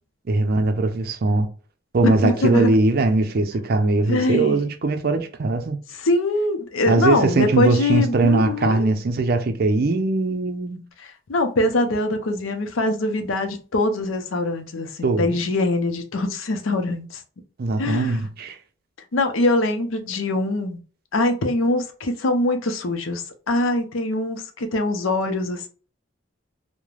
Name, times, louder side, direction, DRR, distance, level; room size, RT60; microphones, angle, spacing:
voice 1, 0.3-1.5 1.9-5.8 6.9-10.9 15.0-15.4 17.6-18.6, right 2 dB, 50° right, 0.4 m, -20 dB
voice 2, 2.0-2.7 4.0-4.6 5.9-8.9 11.0-17.2 17.8-18.2 19.1-20.8 21.1-25.7, left 2 dB, 80° left, 0.6 m, -23 dB
3.1 x 2.0 x 2.4 m
head